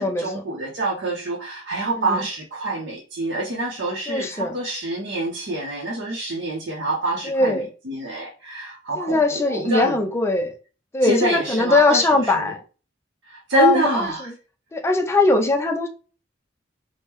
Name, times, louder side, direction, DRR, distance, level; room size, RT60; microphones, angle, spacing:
voice 1, 0.0-10.0 11.0-12.5 13.3-14.3, right 2 dB, 65° right, 0.6 m, -26 dB
voice 2, 4.1-4.5 7.2-7.7 9.0-10.5 10.9-12.6 13.5-13.9 14.3-14.4 14.7-15.9, left 3 dB, 15° left, 0.4 m, -20 dB
3.5 x 2.0 x 2.9 m
head